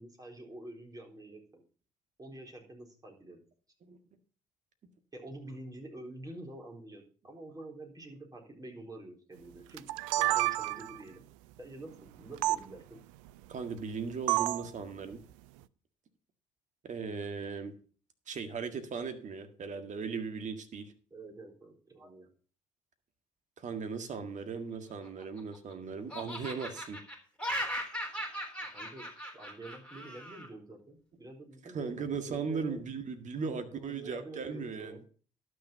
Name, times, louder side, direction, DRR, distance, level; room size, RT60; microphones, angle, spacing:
voice 1, 0.0-1.6 2.2-3.4 5.1-9.8 10.2-11.2 11.6-13.0 21.1-22.3 28.7-29.1 29.3-32.8 33.5-35.0, right 2 dB, 25° right, 4.0 m, -47 dB
sound 1, 9.8-11.0 12.4-12.6 14.3-14.7, right 18 dB, 80° right, 0.4 m, -29 dB
voice 2, 13.5-15.2 16.8-17.7 18.3-20.9 23.6-27.0 31.6-35.0, right 5 dB, 50° right, 1.8 m, -38 dB
Laughter, 24.9-25.7 26.1-30.5, equal, 5° left, 3.5 m, -38 dB
11.5 x 6.7 x 5.7 m
hypercardioid pair, 55°, 16 cm